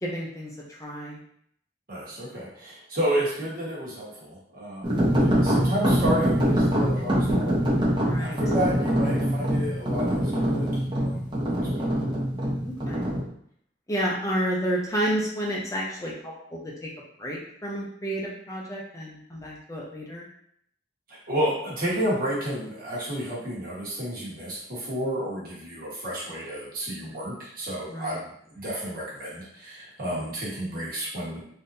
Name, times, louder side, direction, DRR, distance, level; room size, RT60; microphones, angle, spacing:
voice 1, 0.0-1.2 8.0-8.4 12.6-13.0 13.9-16.9 17.2-20.3 27.0-27.2 27.9-28.2, equal, 20° left, -3 dB, 0.6 m, -31 dB
voice 2, 1.9-7.6 8.1-11.4 11.7-11.8 21.1-31.4, equal, 55° right, -6 dB, 1.3 m, -31 dB
sound 1, 4.8-13.2, equal, 25° right, 0.9 m, -24 dB
3.6 x 2.7 x 2.6 m, 0.68 s
head